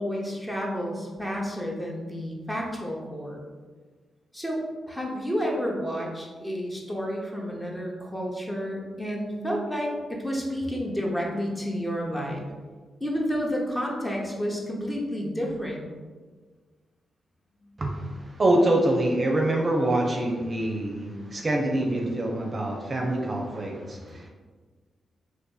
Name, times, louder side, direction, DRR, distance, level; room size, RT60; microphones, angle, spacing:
voice 1, 0.0-3.4 4.3-12.4 13.0-15.9 17.6-17.7 21.6-21.7 23.9-24.1, equal, 15° left, -2 dB, 0.9 m, -30 dB
voice 2, 17.8-24.3, right 1 dB, 40° right, 0 dB, 0.5 m, -25 dB
2.5 x 2.5 x 3.8 m, 1.4 s
hypercardioid pair, 40°, 0 cm